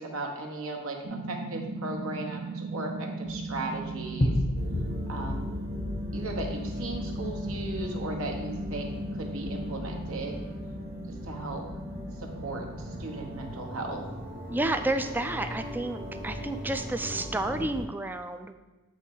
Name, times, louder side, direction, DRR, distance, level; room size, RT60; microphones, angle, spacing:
voice 1, 0.0-4.4 5.1-5.6 6.1-10.4 11.0-11.6 12.2-14.0, right 2 dB, 65° right, 2 dB, 1.1 m, -37 dB
sound 1, 1.0-17.6, right 1 dB, 85° right, 0.8 m, -40 dB
sound 2, 3.3-13.4, left 1 dB, 35° left, 0.7 m, -36 dB
sound 3, 4.5-17.8, equal, 45° right, 1.4 m, -39 dB
voice 2, 14.5-18.6, right 2 dB, 10° right, 8 dB, 0.3 m, -31 dB
8.3 x 3.2 x 5.3 m, 1.2 s
head